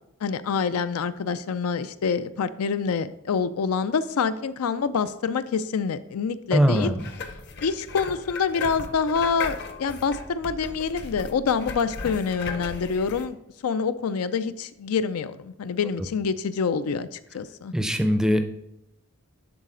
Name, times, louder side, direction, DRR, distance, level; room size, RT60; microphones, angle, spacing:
voice 1, 0.2-6.9 7.6-13.4 13.6-17.7, left 5 dB, 80° left, 13 dB, 0.4 m, -26 dB
voice 2, 6.5-7.0 17.7-18.4, equal, 5° right, 7 dB, 0.5 m, -21 dB
sound 1, 6.8-13.3, left 4 dB, 50° left, 0.8 m, -36 dB
10.5 x 4.0 x 3.8 m, 0.81 s
head